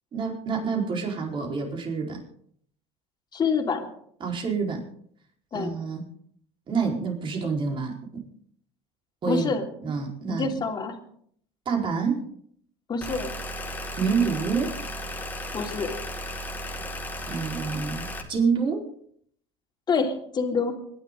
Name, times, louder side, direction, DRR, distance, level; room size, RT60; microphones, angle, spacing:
voice 1, 0.1-2.2 4.2-4.8 5.5-6.0 6.7-8.2 9.2-9.5 9.8-10.5 11.7-12.2 14.0-14.7 17.3-18.9, right 5 dB, 35° right, 1 dB, 4.4 m, -27 dB
voice 2, 3.3-3.9 5.5-5.7 9.3-9.7 10.3-11.0 12.9-13.3 15.5-15.9 19.9-20.7, left 4 dB, 30° left, 2 dB, 3.2 m, -26 dB
sound 1, 13.0-18.2, equal, 15° left, 2.2 m, -35 dB
25.0 x 11.0 x 3.9 m, 0.63 s
supercardioid pair, 110°, 14 cm